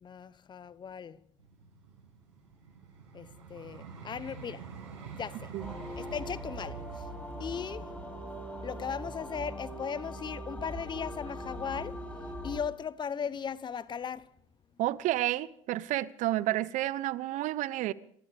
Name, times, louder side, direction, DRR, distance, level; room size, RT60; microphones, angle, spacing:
voice 1, 0.0-1.2 3.1-4.7 5.1-5.5 5.9-7.1 7.4-12.0 12.4-14.3, left 7 dB, 30° left, 0.8 m, -38 dB
Vehicle, 1.4-10.5 11.1-11.3, right 5 dB, 90° right, 7.6 m, -49 dB
sound 1, 5.6-12.6, right 1 dB, 10° left, 6.0 m, -41 dB
voice 2, 14.8-17.9, right 15 dB, 55° right, 0.8 m, -30 dB
27.0 x 14.0 x 3.4 m
hypercardioid pair, 85°, 15 cm